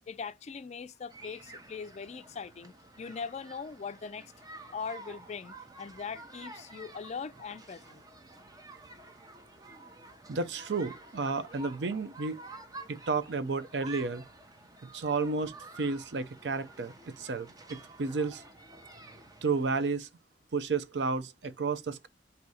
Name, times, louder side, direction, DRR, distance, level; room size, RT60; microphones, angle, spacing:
voice 1, 0.1-4.3 4.7-8.0, left 5 dB, 40° left, 0.4 m, -41 dB
sound 1, 1.1-19.9, right 2 dB, 20° right, 0.7 m, -50 dB
voice 2, 10.3-12.4 12.9-14.2 14.9-18.4 19.4-20.1 20.5-22.1, right 4 dB, 70° right, 0.6 m, -32 dB
4.1 x 2.7 x 4.8 m
head